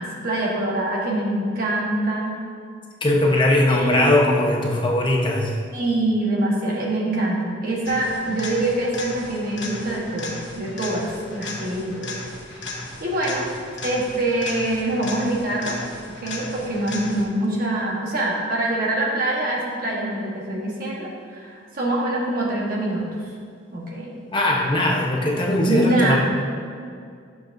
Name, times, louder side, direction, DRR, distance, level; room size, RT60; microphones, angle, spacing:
voice 1, 0.0-2.4 3.7-4.1 5.7-12.1 12.5-13.5 13.8-15.8 16.2-23.1 23.7-24.1 25.7-26.2, right 1 dB, 50° right, -4 dB, 1.3 m, -24 dB
voice 2, 3.0-5.6 24.3-26.2, left 1 dB, 25° left, -1 dB, 1.0 m, -20 dB
sound 1, 7.8-17.5 25.4-25.5, left 2 dB, 65° left, 1.2 m, -35 dB
11.5 x 6.7 x 2.7 m, 2.2 s
head